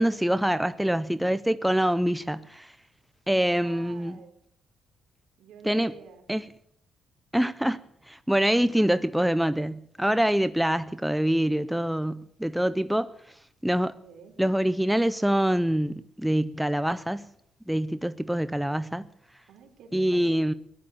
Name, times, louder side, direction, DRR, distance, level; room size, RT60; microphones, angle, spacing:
voice 1, 0.0-2.8 3.3-4.2 5.6-5.9 6.3-6.4 7.3-7.8 8.1-13.1 13.6-13.9 14.4-17.3 17.7-19.1 19.9-20.5, right 1 dB, 5° right, 0.6 m, -25 dB
voice 2, 3.3-4.3 5.4-6.2 14.0-14.4 19.5-20.6, right 6 dB, 80° right, 3.7 m, -49 dB
17.5 x 11.5 x 7.2 m
cardioid pair, 90°, 0 cm